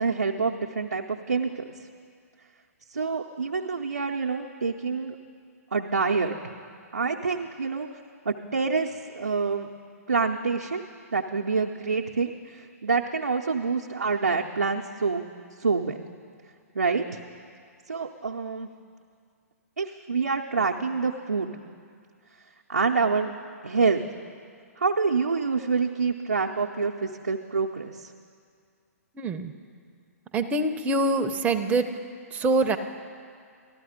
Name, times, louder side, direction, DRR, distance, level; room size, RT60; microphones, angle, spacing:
voice 1, 0.0-1.7 2.9-5.1 5.7-6.5 6.9-7.9 8.2-9.7 10.1-10.8 11.1-15.2 15.6-16.0 16.7-17.2 17.9-18.7 19.8-21.5 22.7-23.3 23.6-24.0 24.8-28.1, right 4 dB, 90° right, -1 dB, 0.6 m, -27 dB
voice 2, 29.2-29.5 30.3-31.9 32.3-32.8, right 2 dB, 15° right, 6 dB, 0.6 m, -24 dB
13.5 x 12.5 x 5.0 m, 2.2 s
hypercardioid pair, 125°, 8 cm